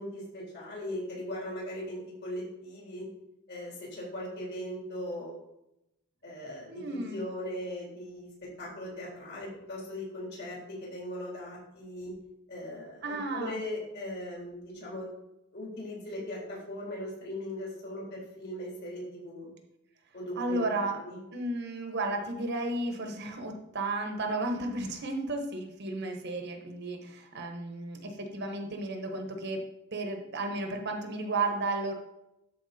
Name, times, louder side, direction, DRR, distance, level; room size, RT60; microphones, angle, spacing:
voice 1, 0.0-3.1 3.5-5.4 6.2-8.3 8.6-12.1 12.5-15.1 15.5-19.5 20.1-21.2, left 1 dB, 50° left, -4 dB, 3.7 m, -39 dB
voice 2, 6.7-7.2 13.0-13.6 20.4-21.0 21.3-29.6 29.9-31.9, right 2 dB, 50° right, 4 dB, 1.1 m, -33 dB
12.5 x 4.7 x 4.3 m, 0.86 s
head